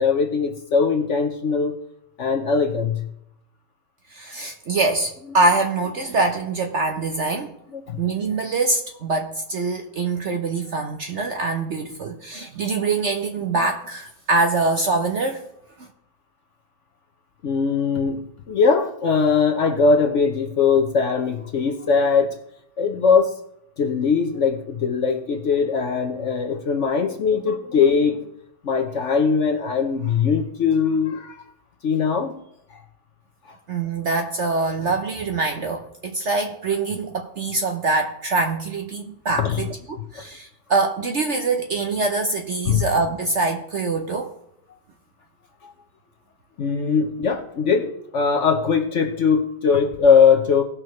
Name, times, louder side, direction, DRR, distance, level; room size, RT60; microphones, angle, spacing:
voice 1, 0.0-1.8 2.2-3.0 7.7-8.0 17.4-22.3 22.8-23.3 23.8-28.2 28.6-31.4 31.8-32.4 32.7-32.8 39.4-39.6 40.2-40.3 42.7-42.9 45.6-45.7 46.6-50.6, left 5 dB, 55° left, 4 dB, 1.0 m, -20 dB
voice 2, 4.1-7.5 8.0-15.4 33.7-44.3, right 3 dB, 55° right, 4 dB, 0.8 m, -24 dB
17.5 x 6.1 x 3.1 m, 0.76 s
omnidirectional pair, 1.8 m